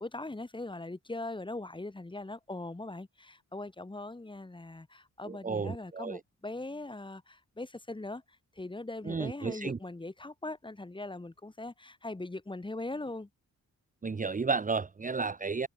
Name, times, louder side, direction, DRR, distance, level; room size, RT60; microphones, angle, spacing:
voice 1, 0.0-13.3, left 2 dB, 15° left, 4.2 m, -41 dB
voice 2, 5.2-6.2 9.1-9.8 14.0-15.7, right 4 dB, 25° right, 1.0 m, -32 dB
wide cardioid pair, 145°, 33 cm